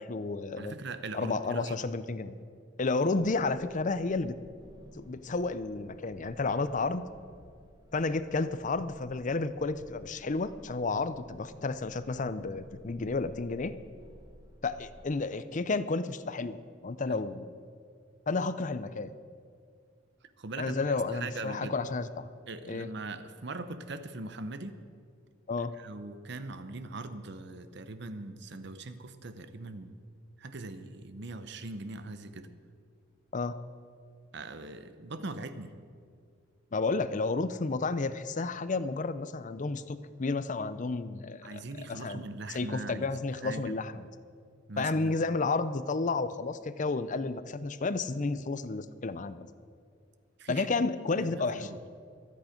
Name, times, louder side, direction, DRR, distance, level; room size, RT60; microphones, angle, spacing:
voice 1, 0.0-0.7 1.1-2.3 2.8-4.4 5.0-7.1 7.9-13.7 14.6-17.6 18.3-19.2 20.6-22.3 22.7-22.9 25.5-25.7 33.3-33.6 36.7-41.6 41.9-44.1 44.8-49.5 50.5-51.9, left 3 dB, 40° left, 13 dB, 0.6 m, -31 dB
voice 2, 0.6-1.8 17.1-17.2 20.4-20.7 21.1-21.8 22.5-24.8 25.8-30.0 30.4-32.5 34.3-35.7 41.4-43.8 44.7-45.2 50.4-50.9 51.2-51.8, right 2 dB, 65° right, 11 dB, 0.9 m, -41 dB
sound 1, 3.2-15.1, equal, 20° right, 1.2 m, -55 dB
23.0 x 8.6 x 5.2 m, 2.2 s
head